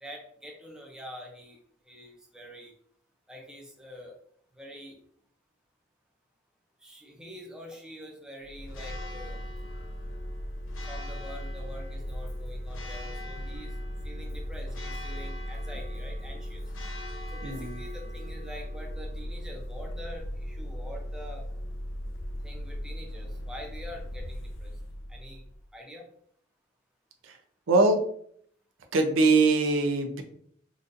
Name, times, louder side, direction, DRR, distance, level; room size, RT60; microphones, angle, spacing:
voice 1, 0.0-1.6 1.9-2.7 3.3-4.2 4.6-5.0 6.8-9.4 10.9-13.7 14.0-16.6 17.3-21.4 22.4-24.7 25.1-25.4 25.7-26.1, equal, 5° right, -1 dB, 0.6 m, -45 dB
Church bell, 8.4-25.7, equal, 80° left, 0.4 m, -37 dB
voice 2, 17.4-17.8 27.2-27.4 27.7-28.0 28.9-30.2, right 3 dB, 85° right, 5 dB, 0.5 m, -22 dB
3.9 x 2.4 x 2.5 m, 0.63 s
head